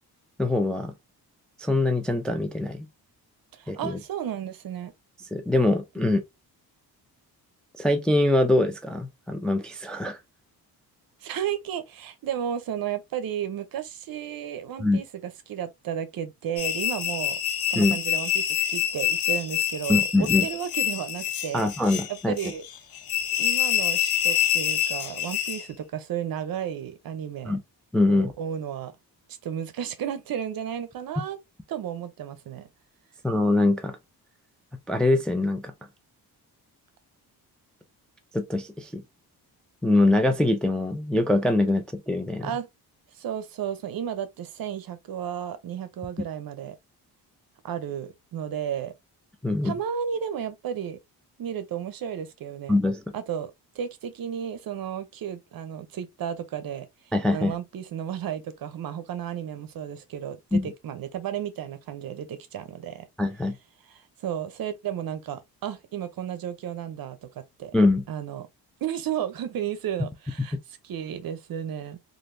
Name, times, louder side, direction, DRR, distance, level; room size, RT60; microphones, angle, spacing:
voice 1, 0.4-0.9 1.6-2.9 3.7-4.0 5.3-6.2 7.8-10.2 14.8-15.0 17.8-18.0 19.9-20.5 21.5-22.3 27.5-27.6 27.9-28.3 33.2-34.0 34.9-35.7 38.3-39.0 39.8-42.5 49.4-49.7 52.7-53.0 57.1-57.5 60.5-60.7 63.2-63.6 67.7-68.0, left 2 dB, ahead, 0.3 m, -23 dB
voice 2, 3.5-4.9 11.2-17.4 17.7-21.7 22.1-22.6 23.4-27.6 28.1-28.9 29.4-31.4 31.7-32.7 42.4-42.7 43.1-46.8 47.6-48.9 49.6-51.0 51.4-52.8 53.1-56.9 57.3-63.1 63.9-67.7 68.1-68.5 68.8-72.0, right 9 dB, 60° right, 0.7 m, -33 dB
sound 1, 16.6-25.7, left 11 dB, 65° left, 0.6 m, -26 dB
3.1 x 2.6 x 2.5 m
cardioid pair, 100°, 40 cm